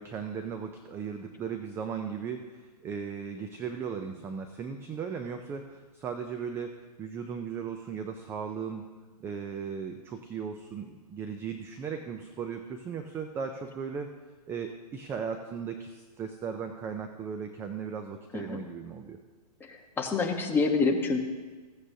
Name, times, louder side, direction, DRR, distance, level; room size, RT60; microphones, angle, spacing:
voice 1, 0.0-6.7 7.0-8.8 9.2-14.1 14.5-19.2, right 6 dB, 10° right, 6 dB, 0.4 m, -37 dB
voice 2, 19.6-21.2, left 4 dB, 10° left, 1 dB, 1.1 m, -27 dB
16.0 x 8.5 x 2.7 m, 1.4 s
hypercardioid pair, 140°, 21 cm